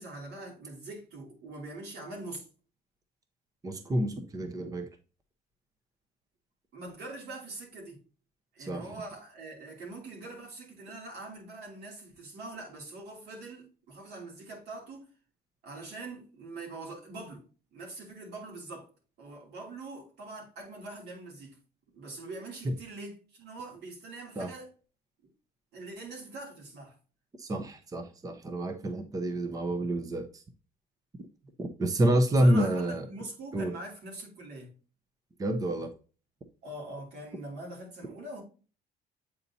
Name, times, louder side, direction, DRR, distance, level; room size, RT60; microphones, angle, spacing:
voice 1, 0.0-2.4 6.7-8.0 8.5-15.1 15.6-17.4 17.7-18.9 19.2-21.6 21.9-24.7 25.7-27.0 32.3-34.7 36.6-38.4, right 2 dB, 75° right, 2.9 m, -43 dB
voice 2, 3.6-4.9 8.6-8.8 22.6-22.7 24.4-24.5 27.4-30.4 31.6-33.1 33.5-33.7 35.4-35.9, right 1 dB, 20° right, 0.8 m, -28 dB
8.5 x 4.0 x 2.8 m
cardioid pair, 110°, 17 cm